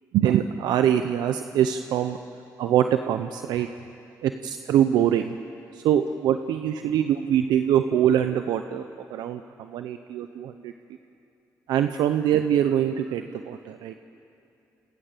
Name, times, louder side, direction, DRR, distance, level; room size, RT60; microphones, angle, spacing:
voice 1, 0.1-2.2 2.6-3.7 4.2-5.3 5.7-8.8 9.1-10.7 11.7-13.9, right 10 dB, 85° right, 8 dB, 0.8 m, -23 dB
29.5 x 29.0 x 6.8 m, 2.7 s
cardioid pair, 70°, 7 cm